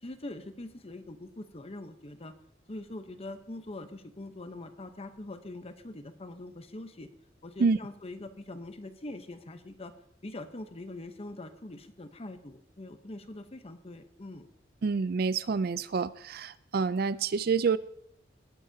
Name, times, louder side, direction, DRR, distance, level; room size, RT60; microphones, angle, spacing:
voice 1, 0.0-2.3 2.7-7.1 7.4-9.9 10.2-14.5, left 2 dB, 35° left, 0.9 m, -43 dB
voice 2, 14.8-17.8, right 5 dB, 55° right, 0.4 m, -27 dB
19.0 x 9.7 x 2.8 m
head